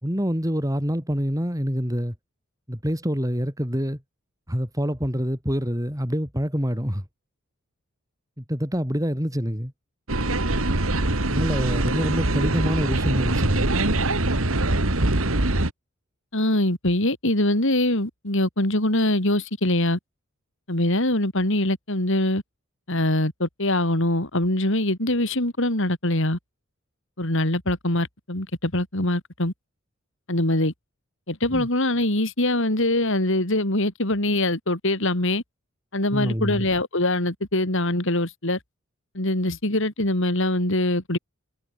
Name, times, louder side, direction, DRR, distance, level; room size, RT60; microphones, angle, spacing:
voice 1, 0.0-2.1 2.7-4.0 4.5-7.0 8.4-9.7 11.3-13.7 31.5-31.7 36.1-36.7, equal, 15° right, 6.8 m, -26 dB
sound 1, 10.1-15.7, right 2 dB, 75° right, 2.6 m, -23 dB
voice 2, 16.3-20.0 20.7-22.4 22.9-26.4 27.2-29.5 30.3-30.7 31.3-35.4 35.9-38.6 39.1-41.2, left 1 dB, 60° left, 4.3 m, -23 dB
head